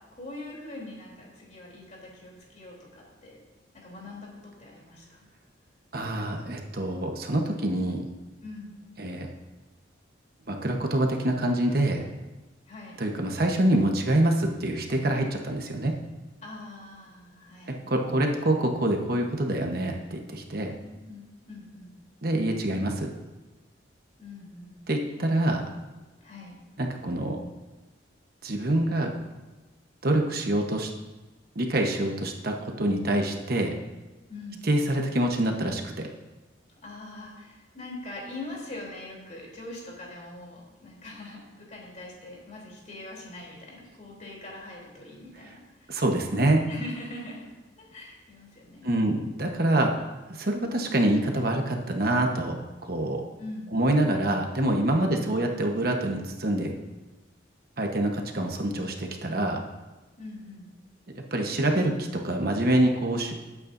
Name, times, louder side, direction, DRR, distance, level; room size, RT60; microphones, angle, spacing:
voice 1, 0.1-3.4 3.8-4.3 4.6-5.3 8.4-8.8 12.7-13.0 16.4-17.8 20.8-21.9 24.2-24.8 26.2-26.6 34.3-34.6 36.8-45.9 46.7-47.5 47.8-49.2 53.4-53.9 55.1-55.5 60.2-60.7, left 2 dB, 40° left, -3 dB, 3.4 m, -42 dB
voice 2, 5.9-8.1 9.0-9.3 10.5-12.0 13.0-15.9 17.7-20.7 22.2-23.1 24.9-25.6 26.8-27.4 28.4-29.1 30.0-30.9 31.5-33.7 34.6-36.1 45.9-46.6 48.8-50.0 50.3-52.5 52.8-53.2 53.7-56.7 57.8-59.6 61.3-63.3, right 1 dB, 55° right, 2 dB, 1.1 m, -26 dB
19.5 x 8.6 x 2.7 m, 1.2 s
head